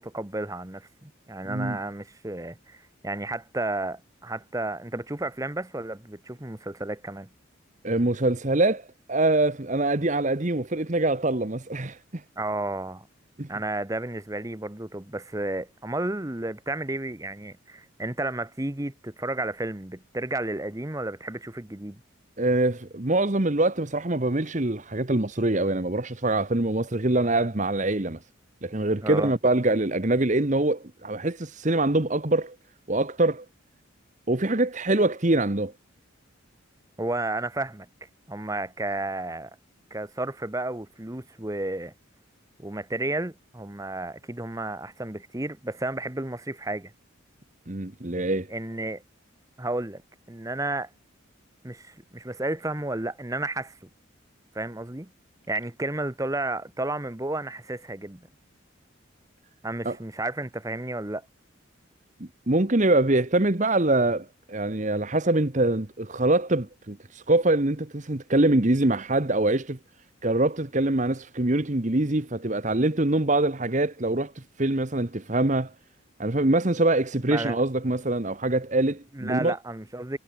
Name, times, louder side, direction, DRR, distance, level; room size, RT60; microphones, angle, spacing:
voice 1, 0.0-7.3 12.4-13.1 13.5-22.0 29.0-29.3 37.0-37.9 38.3-39.5 39.9-41.9 42.6-46.9 48.5-49.0 49.6-50.0 50.3-50.9 51.6-53.7 54.5-55.1 55.5-58.3 59.6-61.2 77.3-77.6 79.1-80.2, right 2 dB, 15° right, 1.0 m, -32 dB
voice 2, 1.4-1.8 7.8-12.2 13.4-13.5 22.4-28.2 28.6-32.5 32.9-33.4 34.3-35.7 47.7-48.5 59.8-60.0 62.2-69.8 70.2-75.7 76.2-79.5, right 2 dB, 35° right, 1.2 m, -24 dB
head